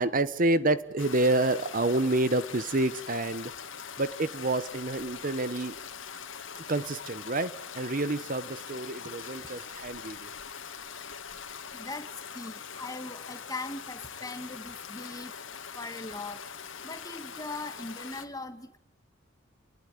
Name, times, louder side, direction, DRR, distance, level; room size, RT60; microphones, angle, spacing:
voice 1, 0.0-3.5 4.0-5.7 6.5-10.3, right 2 dB, 45° right, 14 dB, 1.1 m, -28 dB
Stream, 1.0-18.3, left 7 dB, 80° left, 2.2 m, -42 dB
voice 2, 11.7-15.3 15.7-16.4 16.8-18.8, left 2 dB, 20° left, 9 dB, 2.0 m, -40 dB
30.0 x 19.5 x 9.7 m, 0.76 s
head